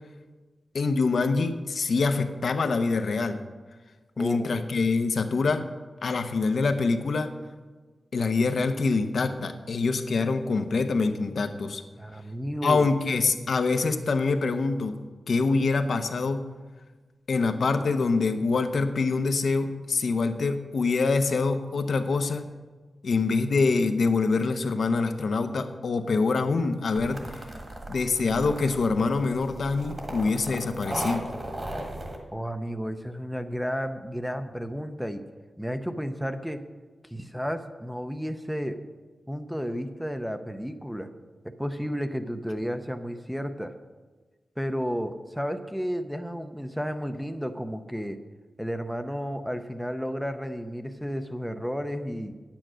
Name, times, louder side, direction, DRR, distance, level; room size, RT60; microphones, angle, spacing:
voice 1, 0.7-3.4 4.2-5.7 6.0-7.3 8.1-11.8 12.6-15.0 15.3-16.4 17.3-22.5 23.0-27.2 27.9-31.3, left 4 dB, 70° left, 7 dB, 0.7 m, -25 dB
voice 2, 4.2-4.6 12.0-12.9 32.3-35.2 35.6-36.6 37.1-38.8 39.3-41.1 41.6-43.7 44.6-48.2 48.6-52.3, equal, ahead, 8 dB, 0.6 m, -32 dB
sound 1, 27.0-32.2, right 1 dB, 30° right, 1.6 m, -37 dB
9.0 x 8.8 x 6.2 m, 1.3 s
wide cardioid pair, 125°, 0 cm